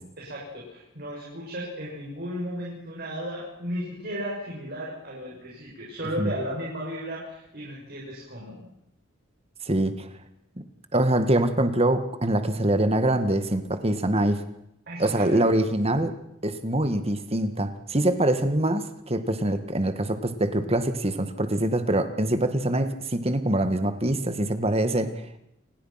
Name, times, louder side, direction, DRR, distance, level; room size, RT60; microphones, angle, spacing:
voice 1, 0.2-8.7 14.9-15.4, equal, 50° right, -5 dB, 7.0 m, -35 dB
voice 2, 9.7-10.1 10.9-14.4 15.0-16.1 16.4-25.1, right 1 dB, 30° right, 9 dB, 1.8 m, -24 dB
28.5 x 19.5 x 5.9 m, 0.80 s
head